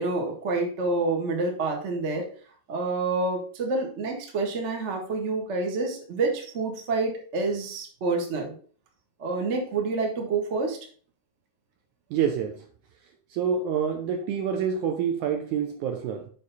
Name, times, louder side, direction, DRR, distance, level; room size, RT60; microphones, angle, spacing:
voice 1, 0.0-2.3 2.7-8.5 9.2-10.8, right 3 dB, 45° right, 0.9 m, -28 dB
voice 2, 12.1-12.6 13.3-16.3, right 7 dB, 75° right, 1.9 m, -27 dB
6.8 x 5.7 x 4.1 m
omnidirectional pair, 4.1 m